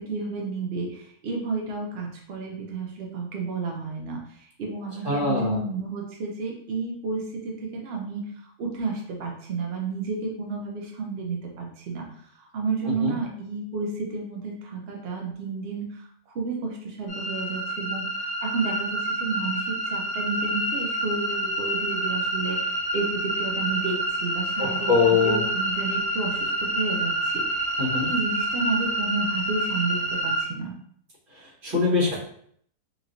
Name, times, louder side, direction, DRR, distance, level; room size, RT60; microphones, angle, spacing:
voice 1, 0.0-12.1 12.3-24.9 25.2-30.7, right 4 dB, 80° right, 0 dB, 0.5 m, -31 dB
voice 2, 5.0-5.6 12.8-13.1 24.6-25.4 27.8-28.1 31.3-32.2, left 4 dB, 35° right, -7 dB, 1.2 m, -23 dB
sound 1, 17.1-30.4, right 1 dB, 50° left, 1.0 m, -28 dB
3.0 x 2.9 x 2.5 m, 0.65 s
omnidirectional pair, 1.7 m